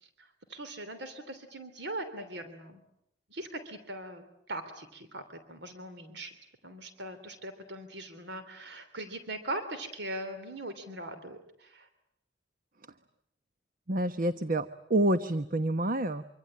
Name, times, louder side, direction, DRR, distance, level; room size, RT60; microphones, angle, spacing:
voice 1, 0.2-2.8 3.3-6.3 6.6-11.9, right 1 dB, 65° right, 9 dB, 3.2 m, -40 dB
voice 2, 13.9-16.2, right 1 dB, 50° right, 11 dB, 1.1 m, -28 dB
25.5 x 25.0 x 8.8 m, 0.76 s
head